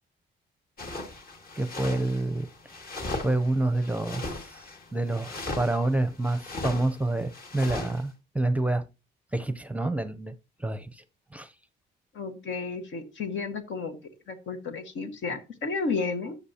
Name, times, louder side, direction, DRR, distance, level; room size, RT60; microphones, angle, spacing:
sound 1, 0.8-8.0, left 2 dB, 50° left, 2.2 m, -38 dB
voice 1, 1.6-2.5 3.2-4.6 4.9-8.8 9.3-10.3 10.6-11.0 11.3-11.5, right 2 dB, 5° right, 0.7 m, -28 dB
voice 2, 12.1-14.0 14.3-16.4, left 4 dB, 75° left, 1.6 m, -32 dB
12.5 x 6.8 x 2.9 m
cardioid pair, 90°, 20 cm